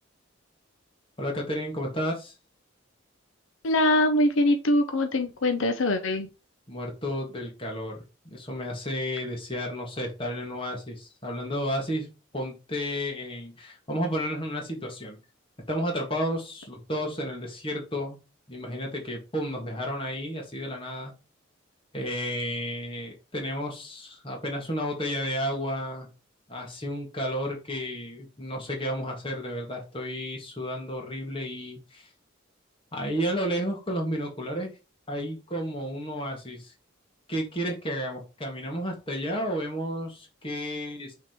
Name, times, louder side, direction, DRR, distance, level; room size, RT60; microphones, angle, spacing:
voice 1, 1.2-2.3 6.7-12.1 12.3-15.2 15.7-18.2 18.5-21.1 21.9-26.1 26.5-32.1 32.9-34.7 35.1-36.7 37.3-41.1, equal, 25° left, 1 dB, 1.9 m, -32 dB
voice 2, 3.6-6.3, left 1 dB, 80° left, 6 dB, 0.7 m, -23 dB
5.9 x 3.8 x 4.5 m, 0.30 s
head